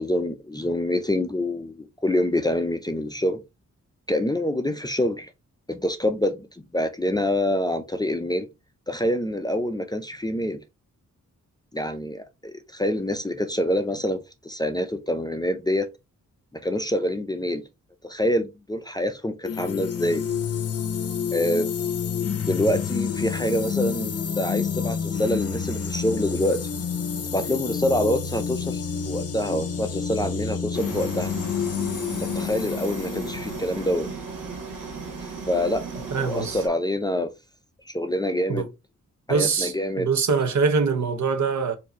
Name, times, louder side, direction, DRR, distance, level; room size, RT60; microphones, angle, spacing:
voice 1, 0.0-3.4 4.1-5.3 5.7-8.5 8.9-10.6 11.7-15.9 16.5-17.6 18.1-20.3 21.3-21.7 22.5-26.7 27.3-31.3 32.3-34.1 35.2-37.3 37.9-38.7 39.3-40.1, left 1 dB, 15° left, 0.5 m, -26 dB
sound 1, 19.4-34.1, left 7 dB, 50° left, 0.7 m, -29 dB
sound 2, 30.7-36.7, right 5 dB, 85° right, 2.0 m, -36 dB
voice 2, 36.1-36.6 38.5-38.7 39.3-41.7, right 5 dB, 65° right, 0.9 m, -23 dB
4.6 x 2.7 x 4.3 m
wide cardioid pair, 165°, 31 cm